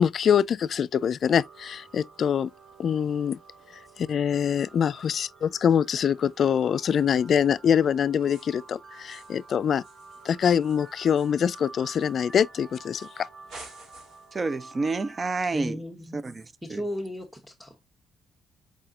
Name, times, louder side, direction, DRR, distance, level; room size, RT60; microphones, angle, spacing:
voice 1, 0.0-2.5 2.8-3.4 4.0-9.8 10.2-13.3, left 8 dB, 55° left, 0.3 m, -24 dB
sound 1, 1.3-15.4, right 3 dB, 50° right, 2.0 m, -50 dB
sound 2, 8.2-8.7 9.1-9.5 9.8-12.5 12.9-13.2 13.5-14.3, right 2 dB, 75° right, 3.3 m, -50 dB
voice 2, 14.3-15.8 16.1-16.4 16.7-16.8, right 3 dB, 30° right, 0.5 m, -28 dB
voice 3, 15.5-16.2 16.6-17.8, equal, ahead, 1.0 m, -35 dB
4.8 x 4.2 x 2.4 m
cardioid pair, 90°, 0 cm